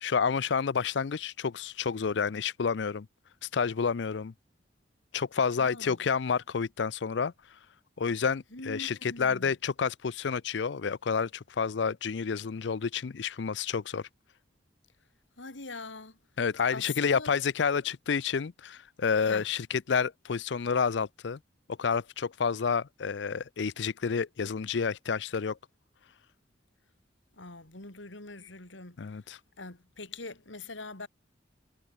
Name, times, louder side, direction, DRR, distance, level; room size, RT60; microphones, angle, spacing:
voice 1, 0.0-3.1 3.5-4.3 5.1-7.3 8.0-14.1 16.4-21.4 21.8-25.6 29.0-29.4, left 6 dB, 70° left, 0.5 m, -29 dB
voice 2, 5.6-6.0 8.5-9.5 15.4-16.2 16.7-17.3 19.2-19.5 27.4-29.2 29.6-31.1, left 3 dB, 90° left, 3.9 m, -43 dB
head